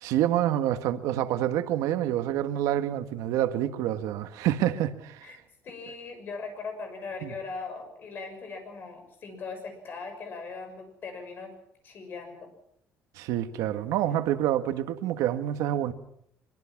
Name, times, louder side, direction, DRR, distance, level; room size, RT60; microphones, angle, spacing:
voice 1, 0.0-5.2 7.2-7.3 13.1-15.9, right 12 dB, 85° right, 1.6 m, -27 dB
voice 2, 5.6-11.5 11.8-12.5, left 4 dB, 40° left, 6.4 m, -39 dB
24.0 x 23.5 x 6.0 m
cardioid pair, 170°, 6 cm